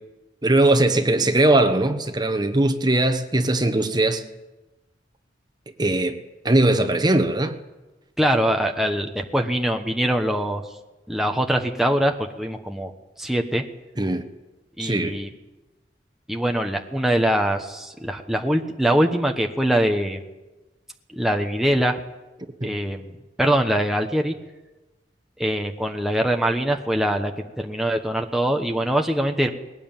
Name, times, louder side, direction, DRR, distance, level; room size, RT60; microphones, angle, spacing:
voice 1, 0.4-4.2 5.8-6.2 6.4-7.6 14.0-14.2 14.8-15.2 22.6-22.7, right 2 dB, 25° right, 8 dB, 1.3 m, -20 dB
voice 2, 8.2-10.6 11.1-12.9 13.2-13.6 14.8-15.3 16.3-20.3 21.2-22.0 22.6-24.3 25.4-29.5, right 1 dB, ahead, 2 dB, 1.1 m, -23 dB
20.5 x 18.0 x 9.0 m, 1.1 s
head